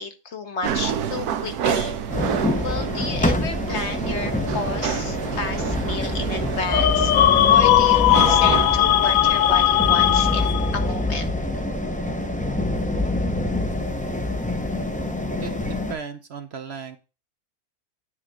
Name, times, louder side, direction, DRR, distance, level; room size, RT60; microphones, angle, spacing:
voice 1, 0.0-1.9 2.6-7.1 7.5-11.3, left 4 dB, 50° left, 7 dB, 1.2 m, -32 dB
sound 1, 0.6-10.5, right 8 dB, 80° right, 1.2 m, -29 dB
sound 2, 2.1-16.0, left 1 dB, 10° left, 0.5 m, -26 dB
sound 3, 6.7-10.8, left 13 dB, 70° left, 0.9 m, -18 dB
voice 2, 15.4-17.0, right 6 dB, 55° right, 8 dB, 0.8 m, -36 dB
9.6 x 3.6 x 6.2 m, 0.32 s
omnidirectional pair, 1.6 m